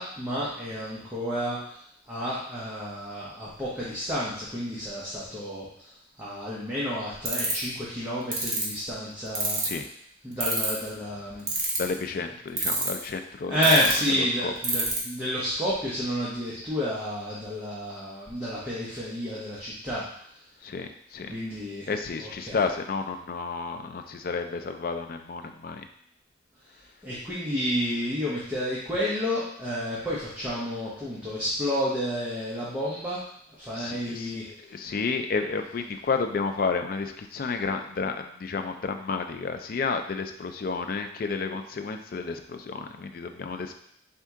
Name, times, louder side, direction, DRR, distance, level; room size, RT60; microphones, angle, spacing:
voice 1, 0.0-1.8 2.1-5.7 6.2-9.6 10.2-11.5 13.5-20.0 21.3-21.9 22.2-22.6 27.0-33.2 33.6-34.4, equal, 10° right, -9 dB, 0.7 m, -30 dB
sound 1, 7.3-7.6 8.3-8.6 9.3-9.8 10.4-10.9 11.5-11.9 12.6-13.0 13.6-13.9 14.6-15.0, right 4 dB, 50° right, 1.0 m, -26 dB
voice 2, 11.8-13.6 14.4-14.5 20.6-21.4 21.9-25.9 33.8-43.8, left 4 dB, 45° left, 6 dB, 0.3 m, -31 dB
4.3 x 2.8 x 3.5 m, 0.67 s
head